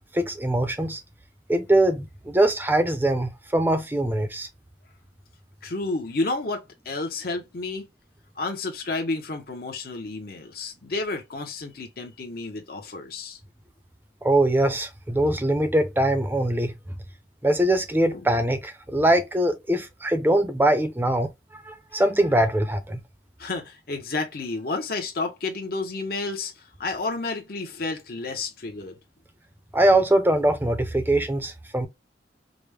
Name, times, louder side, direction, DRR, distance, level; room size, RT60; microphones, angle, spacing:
voice 1, 0.1-1.0 1.5-4.5 14.2-16.7 17.4-23.0 29.7-31.9, right 1 dB, 10° right, 0.5 m, -22 dB
voice 2, 5.6-7.9 8.4-13.4 18.1-18.2 21.9-22.0 23.4-29.0, left 3 dB, 55° left, 0.8 m, -31 dB
5.0 x 2.1 x 3.3 m
head